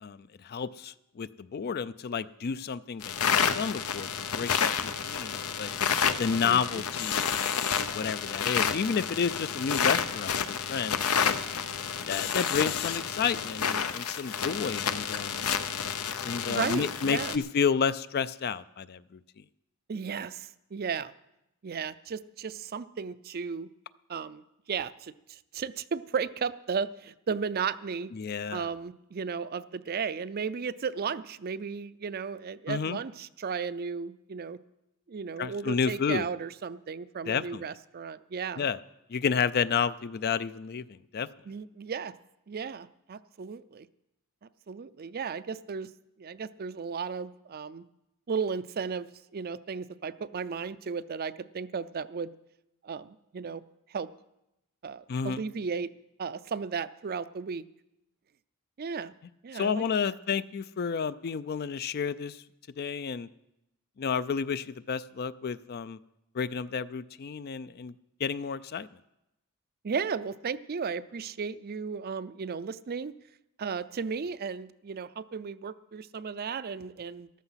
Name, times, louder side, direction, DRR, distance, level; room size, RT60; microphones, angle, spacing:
voice 1, 0.0-5.7 6.2-7.6 7.9-11.4 12.1-15.5 16.2-19.2 28.1-28.7 32.7-33.0 35.4-36.2 37.3-37.6 38.6-38.8 39.1-40.8 41.1-41.3 55.1-55.4 59.5-62.4 62.8-63.3 64.0-66.0 66.3-67.9 68.2-68.9, left 6 dB, 45° left, 16 dB, 0.4 m, -31 dB
sound 1, 3.0-17.4, left 7 dB, 85° left, 0.8 m, -30 dB
voice 2, 6.4-6.8 16.5-17.4 19.9-21.1 21.6-23.7 24.1-28.1 28.5-34.6 35.1-38.7 41.5-42.1 42.5-43.9 44.7-45.9 46.2-47.8 48.3-52.3 52.8-53.6 53.9-54.1 54.8-55.9 56.2-57.6 58.8-59.1 59.4-60.2 69.8-73.1 73.6-77.3, right 5 dB, 45° right, 14 dB, 0.4 m, -35 dB
14.0 x 13.0 x 5.7 m, 0.89 s
head